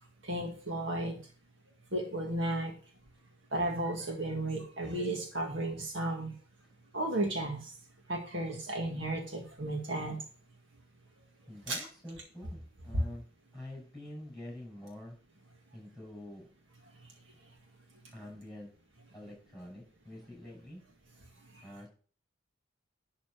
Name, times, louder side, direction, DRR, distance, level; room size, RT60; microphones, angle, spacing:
voice 1, 0.2-1.2 1.9-2.8 3.5-6.3 6.9-7.7 8.1-10.2 11.7-11.9 21.5-21.6, right 1 dB, 60° right, 1 dB, 1.9 m, -34 dB
voice 2, 11.5-13.2 13.5-15.2 15.7-16.5 18.1-18.7 19.1-20.8 21.6-21.9, left 1 dB, ahead, -2 dB, 5.9 m, -46 dB
11.5 x 4.1 x 6.4 m, 0.41 s
head